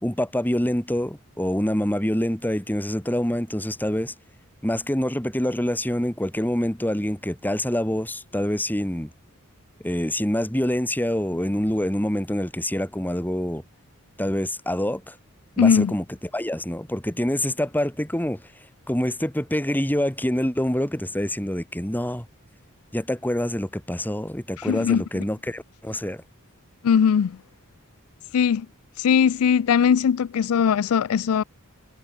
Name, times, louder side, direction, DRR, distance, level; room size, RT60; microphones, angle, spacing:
voice 1, 0.0-4.1 4.6-9.1 9.8-13.6 14.2-15.2 15.6-16.0 16.3-18.4 18.9-22.3 22.9-26.2, left 1 dB, 10° left, 2.2 m, -26 dB
voice 2, 15.6-15.9 24.6-25.0 26.8-27.4 28.3-28.7 29.0-31.4, left 7 dB, 75° left, 0.4 m, -20 dB
head